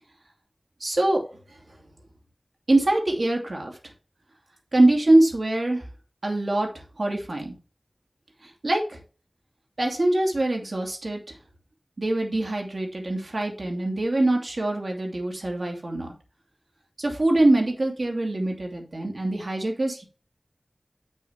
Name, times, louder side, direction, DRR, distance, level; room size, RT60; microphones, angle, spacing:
voice 1, 0.8-1.2 2.7-3.7 4.7-5.8 6.2-6.7 7.0-7.5 8.6-9.0 9.8-11.2 12.0-16.1 17.0-20.0, right 1 dB, 70° right, 1 dB, 2.6 m, -23 dB
7.7 x 6.5 x 3.4 m, 0.35 s
wide cardioid pair, 50°, 0 cm